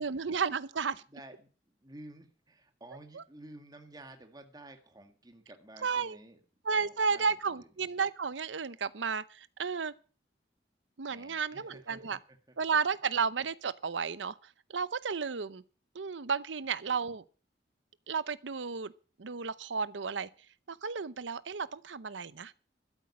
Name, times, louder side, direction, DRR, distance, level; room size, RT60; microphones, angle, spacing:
voice 1, 0.0-1.0 3.1-3.2 5.8-6.2 6.6-9.9 11.0-12.2 12.6-15.6 15.9-17.2 18.1-18.9 19.2-20.3 20.7-22.5, right 5 dB, 85° right, 0.7 m, -33 dB
voice 2, 1.1-6.4 6.7-7.7 11.1-12.8 16.8-17.1, right 1 dB, 20° right, 1.8 m, -52 dB
12.5 x 8.1 x 8.5 m
head